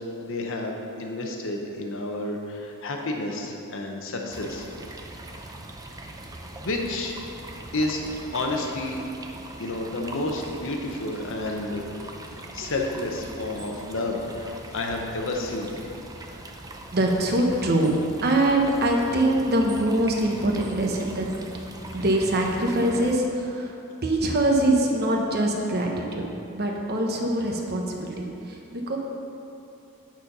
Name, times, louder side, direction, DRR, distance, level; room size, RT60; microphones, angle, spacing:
voice 1, 0.0-4.7 6.6-7.1 7.7-9.0 9.6-11.8 12.5-15.7, left 2 dB, 60° left, 2 dB, 0.8 m, -30 dB
sound 1, 4.3-23.2, right 2 dB, 15° right, 0.5 m, -41 dB
voice 2, 16.9-21.3 21.9-23.7 24.0-26.2 26.5-28.1 28.5-29.0, right 1 dB, 45° right, 0 dB, 0.9 m, -23 dB
9.0 x 4.3 x 5.4 m, 2.8 s
head